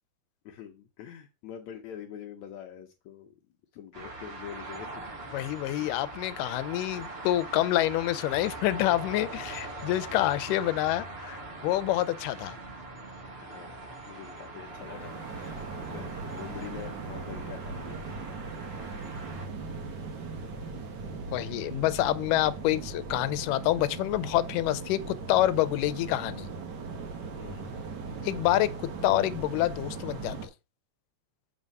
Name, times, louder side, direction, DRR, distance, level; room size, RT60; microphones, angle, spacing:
voice 1, 0.5-3.3 3.7-5.1 5.7-6.1 13.4-18.1 27.4-27.8, left 9 dB, 70° left, 2.0 m, -45 dB
sound 1, 3.9-19.5, right 2 dB, 50° right, 0.7 m, -42 dB
voice 2, 5.3-12.6 21.3-26.5 28.2-30.5, left 14 dB, 90° left, 2.2 m, -27 dB
sound 2, 14.6-30.5, right 4 dB, 75° right, 1.0 m, -39 dB
7.3 x 3.6 x 5.3 m
omnidirectional pair, 3.7 m